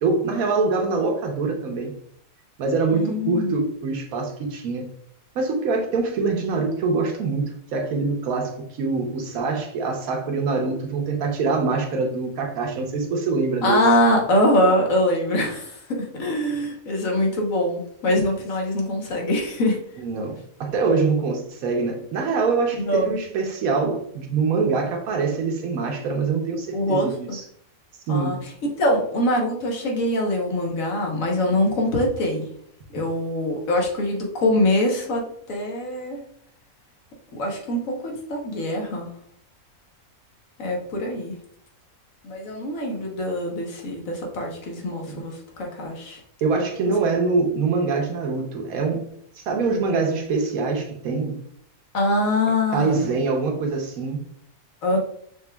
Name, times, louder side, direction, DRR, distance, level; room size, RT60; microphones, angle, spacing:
voice 1, 0.0-1.9 2.6-4.8 5.3-13.8 20.0-27.4 28.1-28.3 45.1-45.2 46.4-49.1 49.4-51.4 52.7-54.3, right 4 dB, 70° right, 2 dB, 1.3 m, -24 dB
voice 2, 2.9-3.5 13.6-19.8 22.8-23.2 26.7-27.4 28.1-28.4 28.8-32.5 32.9-35.2 35.5-36.2 37.3-39.1 40.6-41.3 42.2-46.2 51.9-53.1 54.8-55.0, left 1 dB, 65° left, 1 dB, 1.4 m, -23 dB
6.0 x 3.4 x 2.3 m, 0.66 s
omnidirectional pair, 1.6 m